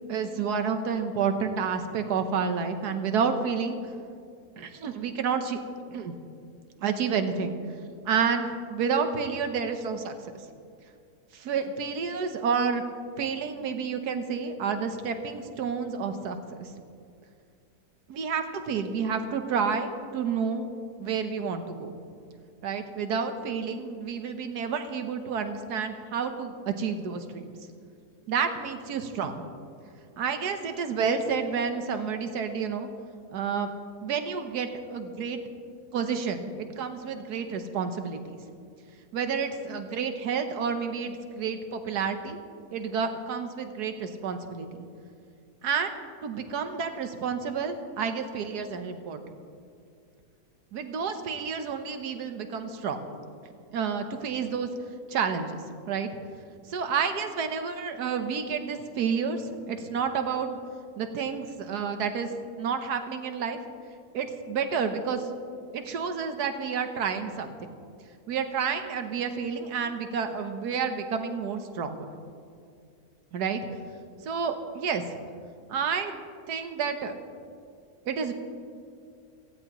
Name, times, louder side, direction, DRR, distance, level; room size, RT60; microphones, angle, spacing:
voice 1, 0.1-3.8 4.6-5.6 5.9-6.1 6.8-7.6 8.0-10.3 11.3-12.8 13.2-16.7 18.1-20.7 21.0-21.9 22.6-27.4 28.3-29.4 30.2-32.9 33.3-33.7 34.0-35.4 35.9-38.4 39.1-42.4 42.7-44.9 45.6-45.9 46.2-49.2 50.7-53.1 53.7-54.7 55.1-55.6 55.9-56.1 56.7-60.6 61.0-62.3 62.6-63.6 64.1-65.3 65.7-67.7 68.3-72.0 73.3-73.6 74.2-75.2 75.7-76.1 76.5-77.1 78.1-78.3, right 6 dB, 80° right, 7 dB, 1.5 m, -30 dB
18.0 x 15.5 x 3.0 m, 2.3 s
omnidirectional pair, 1.7 m